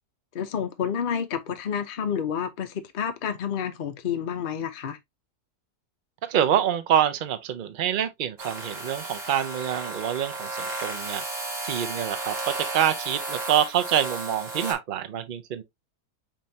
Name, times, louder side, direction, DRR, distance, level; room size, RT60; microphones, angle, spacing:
voice 1, 0.3-5.0, left 8 dB, 45° left, 0.7 m, -29 dB
voice 2, 6.3-11.2 11.6-15.6, right 10 dB, 85° right, 0.4 m, -26 dB
sound 1, 8.4-14.7, right 3 dB, 40° right, 1.8 m, -34 dB
5.3 x 3.6 x 2.7 m
omnidirectional pair, 1.7 m